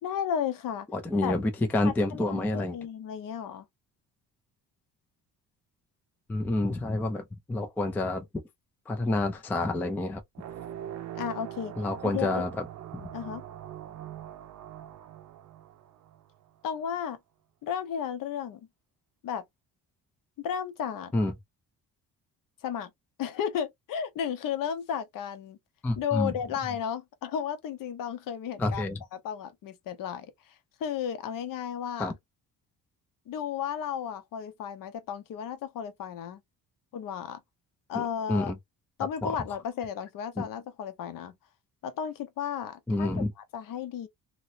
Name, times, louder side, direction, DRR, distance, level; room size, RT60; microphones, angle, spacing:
voice 1, 0.0-0.9 1.2-1.3 1.8-3.7 11.1-11.7 12.0-12.5 13.1-13.4 16.6-17.2 17.6-18.7 19.2-19.4 20.4-21.1 22.6-22.9 23.2-25.6 26.0-28.8 29.1-32.1 33.3-36.4 36.9-37.4 37.9-38.5 39.0-41.4 41.8-43.2 43.5-44.1, left 8 dB, 55° left, 0.7 m, -33 dB
voice 2, 0.9-2.8 6.3-8.2 8.9-10.2 11.8-12.5 13.0-13.1 21.1-21.3 25.8-26.3 28.6-29.0 32.0-32.1 38.0-38.1 38.3-38.6 39.2-39.3 40.4-40.5 42.9-43.3, left 2 dB, 5° left, 0.3 m, -28 dB
sound 1, 10.3-16.5, right 11 dB, 45° right, 0.6 m, -42 dB
3.0 x 2.8 x 2.6 m
cardioid pair, 170°, 40 cm